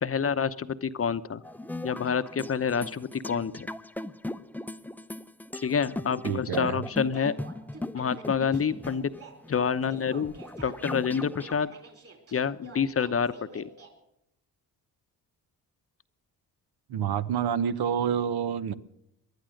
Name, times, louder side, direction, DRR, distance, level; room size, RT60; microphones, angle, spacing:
voice 1, 0.0-1.4 1.8-3.7 5.6-7.3 7.9-9.1 9.5-10.3 10.6-11.7 12.3-13.7, left 6 dB, 35° left, 13 dB, 0.8 m, -28 dB
sound 1, 1.4-11.5, left 2 dB, 5° left, 0.5 m, -39 dB
voice 2, 6.2-6.8 16.9-18.7, right 8 dB, 70° right, 13 dB, 0.9 m, -28 dB
sound 2, 7.1-13.9, right 4 dB, 35° right, 4.4 m, -49 dB
19.5 x 11.5 x 6.4 m, 0.81 s
cardioid pair, 70°, 39 cm